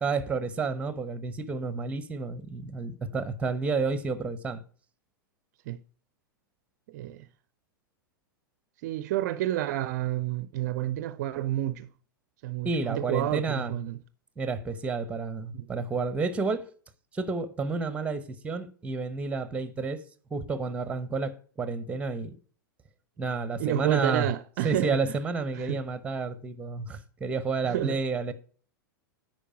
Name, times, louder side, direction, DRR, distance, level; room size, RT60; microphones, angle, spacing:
voice 1, 0.0-4.6 12.6-13.7 14.4-16.7 17.1-20.0 20.3-22.3 23.2-24.3 24.6-28.3, right 4 dB, 10° right, 0.8 m, -30 dB
voice 2, 6.9-7.3 8.8-11.9 12.4-14.0 15.5-15.7 23.6-25.1 25.5-25.8 27.6-28.0, right 14 dB, 50° right, 0.4 m, -30 dB
10.0 x 4.6 x 4.8 m
figure-of-eight pair, 95°, 11 cm